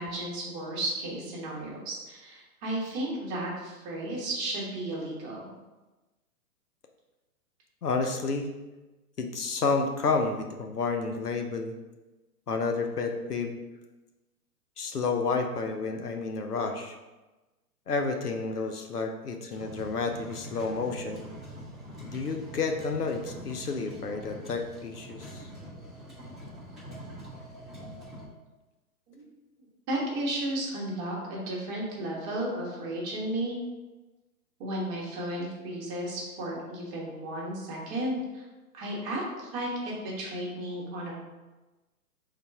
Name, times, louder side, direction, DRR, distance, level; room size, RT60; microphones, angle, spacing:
voice 1, 0.0-5.5 27.8-28.0 29.1-29.2 29.9-33.6 34.6-38.4 38.7-41.2, right 1 dB, 30° right, -3 dB, 1.3 m, -34 dB
voice 2, 7.8-8.5 9.2-11.7 12.5-13.6 14.8-17.0 17.9-21.3 22.0-25.5, left 4 dB, 90° left, 5 dB, 0.7 m, -30 dB
sound 1, 19.5-28.2, equal, ahead, 0.4 m, -44 dB
3.8 x 2.7 x 4.7 m, 1.1 s
figure-of-eight pair, 120°, 45 cm